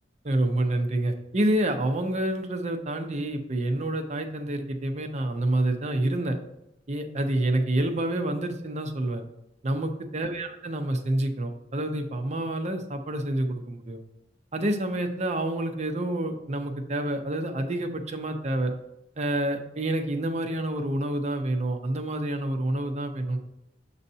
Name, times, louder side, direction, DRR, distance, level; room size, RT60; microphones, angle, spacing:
voice 1, 0.2-6.4 6.9-9.2 9.6-14.0 14.5-18.7 19.2-23.4, right 1 dB, 40° right, 6 dB, 0.7 m, -28 dB
7.1 x 2.7 x 5.4 m, 0.87 s
head